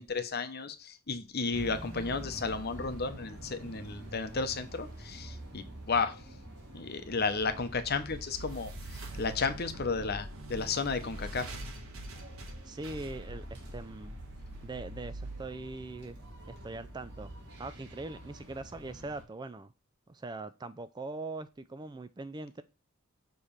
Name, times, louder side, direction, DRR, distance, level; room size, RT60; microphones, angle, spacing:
voice 1, 0.0-6.2 6.7-11.6, left 4 dB, 50° left, 0.8 m, -33 dB
sound 1, 1.5-19.2, right 1 dB, 50° right, 2.6 m, -48 dB
sound 2, 7.4-16.5, right 1 dB, 75° right, 1.4 m, -44 dB
voice 2, 12.6-14.2 14.6-16.2 16.5-17.3 17.6-19.7 20.1-22.6, right 2 dB, 20° right, 0.3 m, -41 dB
6.9 x 3.2 x 5.5 m
head